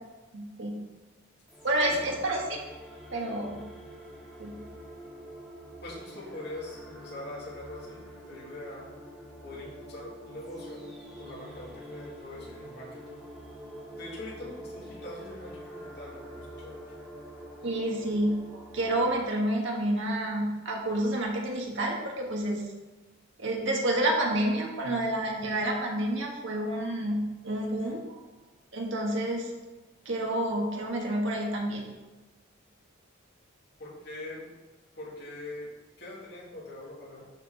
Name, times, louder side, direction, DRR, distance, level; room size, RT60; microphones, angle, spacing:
voice 1, 0.3-0.8 1.6-2.4 3.1-3.7 4.4-4.5 17.6-18.4 18.7-22.6 23.4-28.2 28.7-29.5 30.0-31.8, right 1 dB, 65° right, 0 dB, 1.5 m, -29 dB
sound 1, 1.5-19.3, equal, ahead, 2.1 m, -46 dB
voice 2, 5.8-8.9 9.4-10.9 11.2-13.2 14.0-16.8 33.8-34.5 34.9-35.7 36.0-37.3, left 1 dB, 55° left, -6 dB, 2.7 m, -43 dB
11.5 x 4.5 x 4.0 m, 1.2 s
head